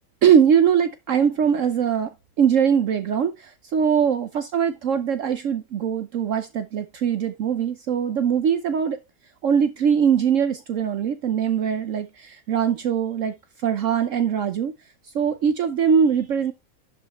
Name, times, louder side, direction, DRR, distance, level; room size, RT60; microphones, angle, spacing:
voice 1, 0.2-2.1 2.4-9.0 9.4-13.3 13.6-14.7 15.1-16.5, right 7 dB, 65° right, 1.0 m, -21 dB
11.5 x 5.5 x 3.1 m
omnidirectional pair, 1.5 m